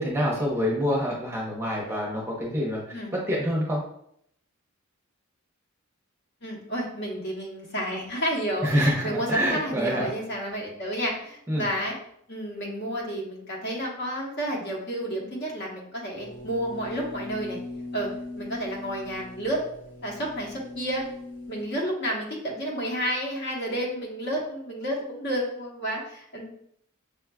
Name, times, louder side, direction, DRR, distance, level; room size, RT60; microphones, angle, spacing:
voice 1, 0.0-3.8 8.6-10.1 11.5-11.7, equal, 10° right, -2 dB, 0.6 m, -26 dB
voice 2, 6.4-12.0 12.3-17.6 17.9-18.1 18.3-19.6 20.0-21.0 21.5-26.5, equal, 50° left, -2 dB, 1.0 m, -31 dB
sound 1, 16.2-21.6, left 2 dB, 35° left, 0.8 m, -40 dB
6.3 x 2.3 x 2.3 m, 0.70 s
head